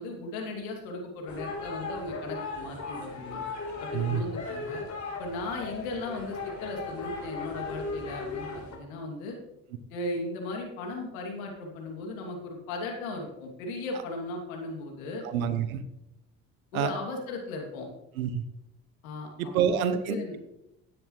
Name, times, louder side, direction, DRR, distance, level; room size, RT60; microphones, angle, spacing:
voice 1, 0.0-3.4 3.8-4.8 5.2-9.4 9.9-15.2 16.7-17.9 19.0-20.3, left 2 dB, 80° left, 1 dB, 2.8 m, -37 dB
sound 1, 1.3-8.8, left 3 dB, 45° left, 3.9 m, -37 dB
voice 2, 15.2-15.8 16.7-16.9 18.2-18.4 19.4-20.2, right 8 dB, 85° right, 12 dB, 0.9 m, -27 dB
15.0 x 10.0 x 3.2 m, 0.86 s
hypercardioid pair, 60°, 41 cm